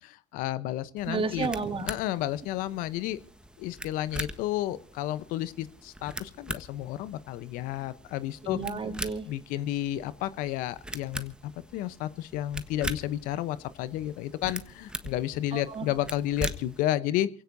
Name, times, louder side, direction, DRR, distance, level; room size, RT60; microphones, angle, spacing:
voice 1, 0.0-1.5 1.8-3.2 3.6-8.6 9.3-17.3, left 13 dB, 70° left, 16 dB, 0.8 m, -31 dB
sound 1, 1.0-16.8, right 1 dB, 5° right, 1.4 m, -42 dB
voice 2, 1.0-1.9 8.4-9.3 15.5-15.9, right 4 dB, 40° right, 5 dB, 3.4 m, -32 dB
28.0 x 17.0 x 2.7 m, 0.41 s
hypercardioid pair, 70°, 15 cm